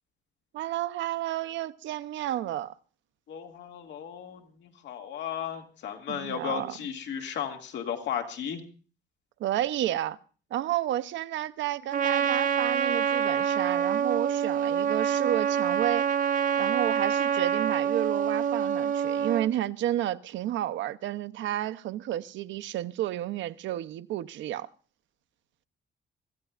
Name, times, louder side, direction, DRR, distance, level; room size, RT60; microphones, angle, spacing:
voice 1, 0.5-2.7 6.1-6.7 9.4-10.2 10.5-16.1 16.6-24.7, right 13 dB, 90° right, 0.7 m, -31 dB
voice 2, 3.3-8.6, left 8 dB, 75° left, 2.2 m, -35 dB
Trumpet, 11.9-19.5, right 8 dB, 45° right, 0.8 m, -26 dB
24.0 x 15.5 x 2.5 m
cardioid pair, 160°, 19 cm